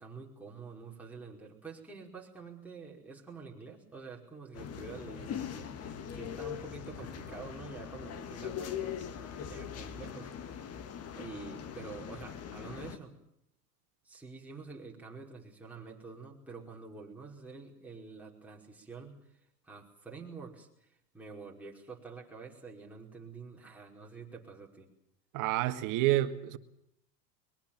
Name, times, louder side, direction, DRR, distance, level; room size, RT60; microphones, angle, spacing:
voice 1, 0.0-10.7 11.1-13.2 14.0-19.4 19.6-20.9 21.1-24.9, right 4 dB, 5° right, 5.1 m, -47 dB
sound 1, 4.5-13.0, left 8 dB, 30° left, 2.0 m, -41 dB
voice 2, 25.3-26.6, right 15 dB, 40° right, 1.9 m, -28 dB
23.0 x 22.0 x 7.5 m
hypercardioid pair, 120°, 48 cm